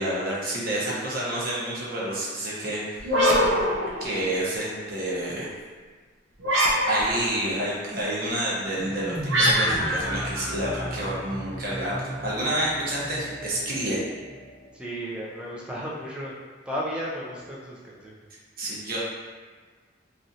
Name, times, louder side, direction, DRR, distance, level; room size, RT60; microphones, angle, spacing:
voice 1, 0.0-3.4 4.0-5.5 6.9-14.0 18.6-19.0, right 1 dB, 50° right, -6 dB, 0.8 m, -29 dB
sound 1, 3.0-4.5 6.4-7.5 9.3-11.2, equal, 85° right, 0.5 m, -24 dB
sound 2, 8.5-14.8, equal, 30° right, 1.0 m, -36 dB
voice 2, 14.7-16.3 16.7-18.2, equal, 5° right, -5 dB, 0.4 m, -34 dB
3.0 x 2.5 x 2.6 m, 1.5 s
head